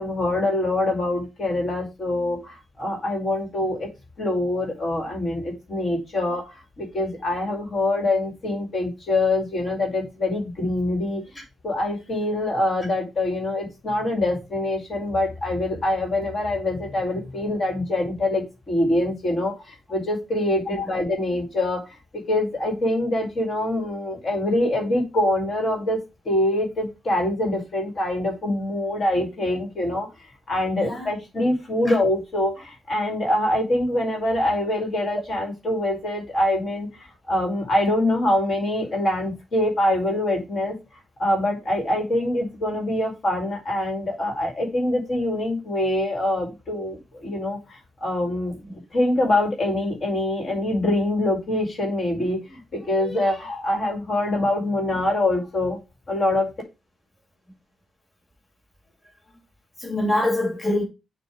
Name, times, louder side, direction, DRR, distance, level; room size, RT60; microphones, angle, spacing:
voice 1, 0.0-3.9 4.2-11.2 11.6-30.1 30.5-40.7 41.2-55.8 56.1-56.5, left 1 dB, 50° left, 2.3 m, -24 dB
voice 2, 30.8-31.1 31.9-32.0 59.8-60.8, left 1 dB, 15° left, 2.3 m, -24 dB
6.9 x 2.8 x 4.9 m
cardioid pair, 105°, 0 cm